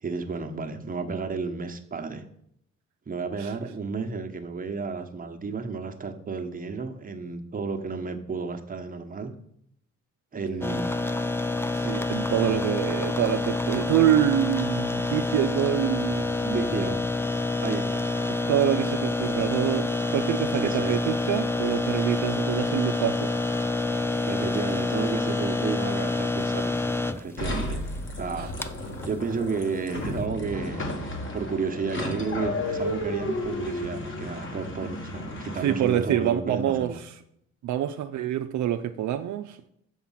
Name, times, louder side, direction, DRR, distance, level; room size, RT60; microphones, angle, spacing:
voice 1, 0.0-2.2 3.1-9.3 10.3-10.9 16.4-17.0 17.6-18.1 20.6-21.0 24.3-27.8 28.2-28.5 29.1-30.9 31.3-37.0, right 4 dB, 30° right, 5 dB, 1.2 m, -32 dB
sound 1, 10.6-30.2, left 3 dB, 10° left, 0.4 m, -28 dB
voice 2, 11.7-16.3 18.3-23.3 28.4-28.5 35.6-36.9 37.6-39.7, right 11 dB, 70° right, 7 dB, 0.6 m, -26 dB
sound 2, 27.4-36.1, left 1 dB, 40° left, 1.8 m, -33 dB
7.2 x 5.9 x 5.7 m, 0.71 s
cardioid pair, 90°, 30 cm